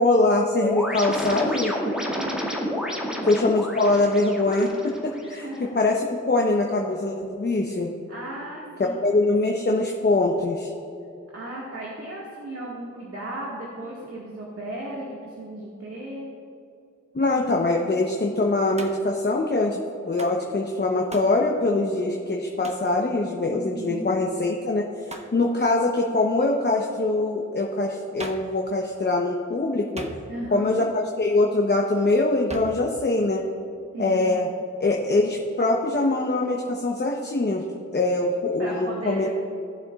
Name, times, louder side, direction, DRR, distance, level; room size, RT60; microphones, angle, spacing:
voice 1, 0.0-1.8 3.2-5.5 5.7-7.9 9.0-10.7 17.1-19.8 20.1-30.0 30.5-33.4 34.0-34.5 34.8-37.6 37.9-39.3, left 2 dB, 35° left, 0 dB, 0.9 m, -23 dB
sound 1, 0.6-5.6, equal, ahead, 2.1 m, -30 dB
voice 2, 2.0-2.8 3.1-3.4 5.1-5.7 8.1-9.0 11.3-16.3 23.5-24.1 30.3-30.8 33.9-34.2 38.6-39.3, right 1 dB, 45° right, -5 dB, 1.9 m, -36 dB
Hands, 18.8-19.2 20.2-20.4 21.1-21.4 22.6-22.9 25.1-25.4 28.2-28.6 30.0-30.5 32.5-32.9, right 1 dB, 20° right, 1.0 m, -38 dB
17.5 x 7.0 x 2.5 m, 2.5 s
cardioid pair, 70°, 30 cm